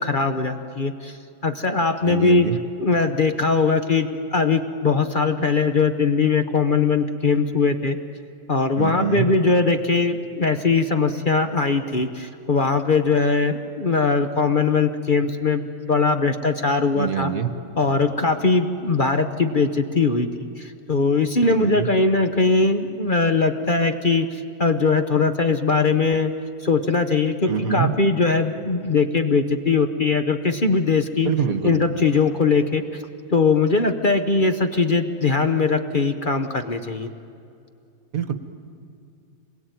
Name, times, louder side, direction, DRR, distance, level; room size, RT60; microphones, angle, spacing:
voice 1, 0.0-1.2 1.4-2.5 2.8-8.0 8.5-17.3 17.8-26.3 26.6-31.3 31.6-33.0 33.3-37.1, left 4 dB, 40° left, 7 dB, 0.7 m, -21 dB
voice 2, 2.1-2.6 8.8-9.3 16.9-17.5 21.4-21.9 27.5-27.9 31.2-31.8 38.1-38.3, right 7 dB, 50° right, 9 dB, 1.4 m, -25 dB
27.0 x 21.5 x 9.3 m, 2.6 s
omnidirectional pair, 2.2 m